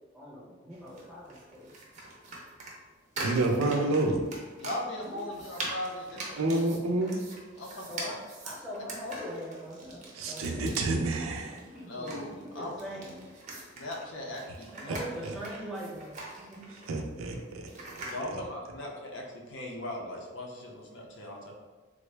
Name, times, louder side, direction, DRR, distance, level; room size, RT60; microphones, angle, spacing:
voice 1, 0.1-1.7 5.0-5.3 7.9-8.2 8.4-10.9 11.5-13.7 14.7-16.7, equal, 5° right, -8 dB, 0.8 m, -42 dB
sound 1, 0.7-18.2, right 2 dB, 35° right, 0.5 m, -43 dB
voice 2, 3.2-4.2 6.4-7.2 10.1-11.6 14.9-15.0 15.2-15.4 16.7-18.0, right 2 dB, 85° right, 3 dB, 0.5 m, -29 dB
voice 3, 4.6-6.6 7.6-8.2 11.9-12.7 13.8-15.0 18.1-21.5, left 1 dB, 60° left, 0 dB, 0.5 m, -39 dB
3.5 x 2.0 x 3.2 m, 1.3 s
head